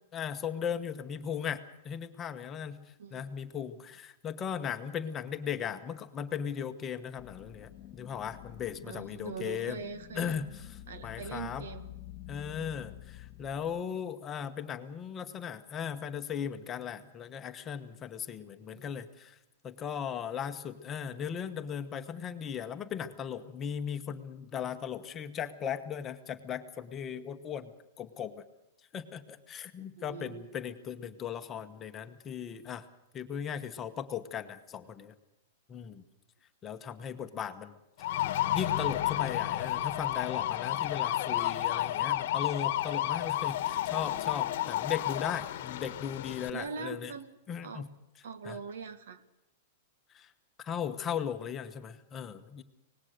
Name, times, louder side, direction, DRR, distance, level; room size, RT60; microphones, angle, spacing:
voice 1, 0.1-9.8 10.2-11.7 12.3-19.4 19.6-28.4 28.9-32.9 33.1-35.1 35.7-36.0 36.6-38.3 38.5-47.1 47.5-47.9 48.4-48.6 50.1-50.3 50.6-52.6, left 8 dB, 20° left, 8 dB, 1.1 m, -37 dB
sound 1, 7.2-13.8, left 13 dB, 35° left, 1.7 m, -48 dB
voice 2, 8.8-10.4 10.9-12.0 18.7-18.9 30.0-30.5 46.5-47.4 47.6-47.9 48.2-49.2, right 5 dB, 80° right, 12 dB, 1.7 m, -42 dB
sound 2, 38.0-46.5, left 13 dB, 55° left, 1.2 m, -31 dB
24.5 x 19.0 x 6.7 m, 0.88 s
supercardioid pair, 160°, 0 cm